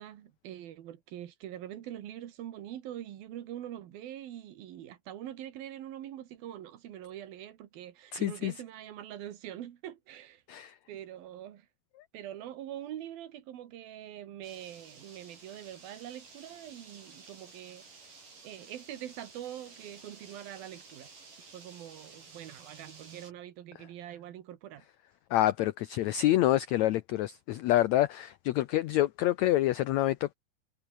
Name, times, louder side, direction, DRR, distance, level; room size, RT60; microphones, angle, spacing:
voice 1, 0.0-10.4 10.9-11.7 12.1-18.0 18.4-21.1 21.5-24.8, right 11 dB, 90° right, 3.5 m, -44 dB
voice 2, 8.1-8.5 10.5-10.7 25.3-30.3, left 14 dB, 85° left, 1.6 m, -27 dB
sound 1, 14.4-23.3, right 4 dB, 65° right, 8.3 m, -53 dB
omnidirectional pair, 4.1 m